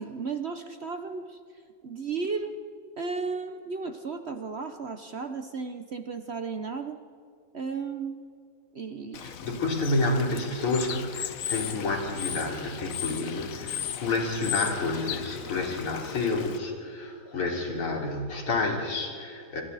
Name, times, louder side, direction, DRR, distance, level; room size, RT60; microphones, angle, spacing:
voice 1, 0.0-1.4 1.8-2.6 3.0-7.0 7.5-8.3 8.7-9.3, right 4 dB, 50° right, 8 dB, 0.7 m, -34 dB
Bird / Water, 9.1-16.6, left 9 dB, 60° left, 0.9 m, -36 dB
voice 2, 9.2-19.6, left 3 dB, 90° left, 0 dB, 4.4 m, -29 dB
28.5 x 26.0 x 4.1 m, 2.4 s
omnidirectional pair, 2.3 m